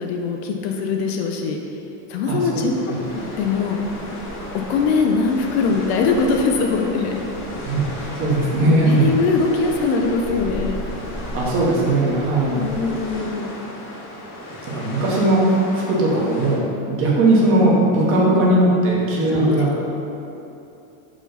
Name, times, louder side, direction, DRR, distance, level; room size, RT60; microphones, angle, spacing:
voice 1, 0.0-1.8 2.1-2.7 3.4-3.8 4.7-7.2 8.8-10.9 12.6-13.5 18.2-18.6 19.2-19.8, left 4 dB, 50° left, 2 dB, 0.5 m, -22 dB
sound 1, 2.5-16.6, left 1 dB, 30° left, 0.9 m, -36 dB
sound 2, 3.0-13.1, equal, ahead, 0.8 m, -36 dB
voice 2, 7.6-9.1 11.2-12.7 14.7-19.8, right 1 dB, 30° right, -4 dB, 1.1 m, -18 dB
5.3 x 5.0 x 3.9 m, 2.9 s
supercardioid pair, 170°, 41 cm